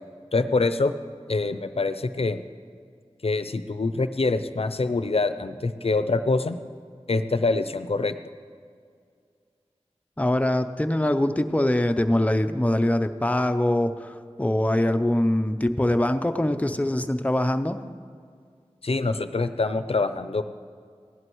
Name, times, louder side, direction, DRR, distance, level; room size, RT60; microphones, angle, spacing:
voice 1, 0.3-0.9 1.3-2.4 3.2-6.6 7.1-8.2 18.8-20.4, left 3 dB, 65° left, 11 dB, 0.5 m, -25 dB
voice 2, 10.2-17.8, left 1 dB, 15° left, 8 dB, 0.6 m, -23 dB
16.5 x 11.0 x 3.1 m, 2.2 s
wide cardioid pair, 45°, 11 cm